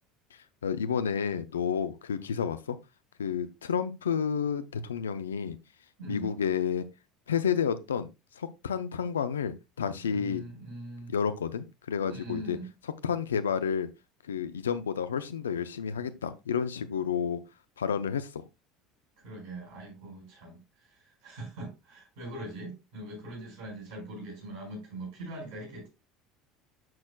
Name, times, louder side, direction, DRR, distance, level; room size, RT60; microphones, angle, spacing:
voice 1, 0.3-2.8 3.2-5.6 6.1-6.9 7.3-8.1 8.3-10.4 11.1-12.6 13.0-13.9 14.3-17.4 17.8-18.4, left 7 dB, 85° left, 0.5 m, -30 dB
voice 2, 6.0-6.3 10.0-11.1 12.1-12.7 19.2-25.9, right 1 dB, 65° right, 5.4 m, -42 dB
10.5 x 6.3 x 2.3 m
hypercardioid pair, 75°, 0 cm